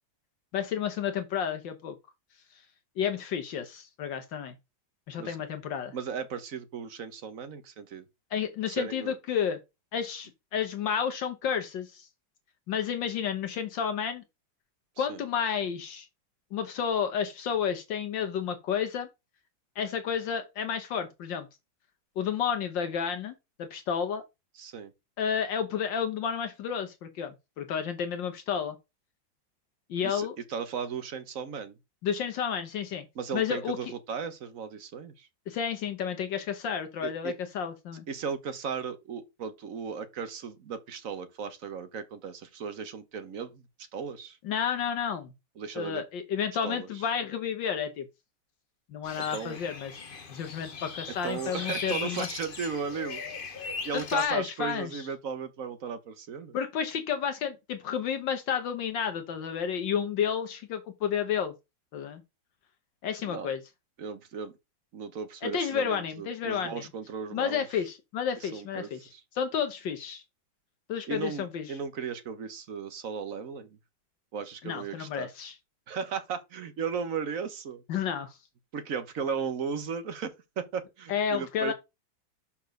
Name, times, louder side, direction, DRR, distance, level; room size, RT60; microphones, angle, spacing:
voice 1, 0.5-1.9 3.0-4.5 5.1-5.9 8.3-9.6 9.9-12.1 12.7-14.2 15.0-16.1 16.5-19.1 19.8-21.5 22.2-24.2 25.2-28.7 29.9-30.3 32.0-33.1 33.3-33.8 35.5-38.0 44.4-45.3 45.7-48.1 48.9-49.9 50.3-52.3 53.9-55.0 56.5-61.5 61.9-62.2 63.0-63.6 65.4-66.8 67.3-69.1 69.3-70.2 70.9-71.7 74.6-75.5 77.9-78.4 81.1-81.7, left 8 dB, 70° left, 1.6 m, -31 dB
voice 2, 5.9-8.0 8.7-9.1 15.0-15.2 24.6-24.9 30.0-31.7 33.2-35.3 37.0-37.4 38.1-43.6 43.9-44.4 45.6-46.0 46.6-46.9 49.2-49.6 51.2-53.2 53.8-56.6 63.2-63.5 64.0-64.5 64.9-67.6 68.4-69.2 71.1-73.7 74.3-75.3 75.9-77.8 78.7-81.7, right 6 dB, 50° right, 1.1 m, -36 dB
sound 1, 49.0-54.3, left 4 dB, 35° left, 0.9 m, -39 dB
5.8 x 4.2 x 6.3 m
omnidirectional pair, 2.1 m